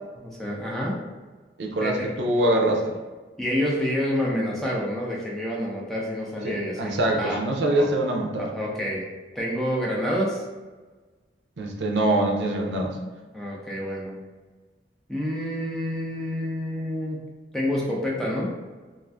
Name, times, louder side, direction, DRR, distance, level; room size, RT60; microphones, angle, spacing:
voice 1, 0.2-1.0 1.8-2.1 3.4-7.4 7.7-7.9 8.4-9.0 9.3-10.4 13.3-14.2 15.1-17.2 17.5-18.5, equal, ahead, -4 dB, 0.5 m, -28 dB
voice 2, 1.6-2.9 6.4-8.5 11.6-13.0, right 1 dB, 80° right, 1 dB, 0.5 m, -24 dB
2.5 x 2.5 x 3.3 m, 1.3 s
head